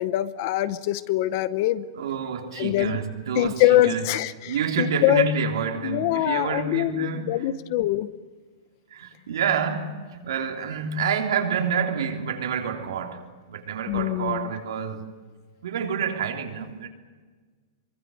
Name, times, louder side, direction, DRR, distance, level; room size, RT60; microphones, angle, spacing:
voice 1, 0.0-1.8 2.6-3.0 3.3-5.3 5.8-8.1 13.9-14.5, left 14 dB, 40° left, 0.8 m, -23 dB
voice 2, 2.0-4.0 4.5-7.5 8.9-13.2 13.5-15.1 15.6-16.9, right 6 dB, 80° right, 3.4 m, -28 dB
24.5 x 23.5 x 6.5 m
supercardioid pair, 170°, 2 cm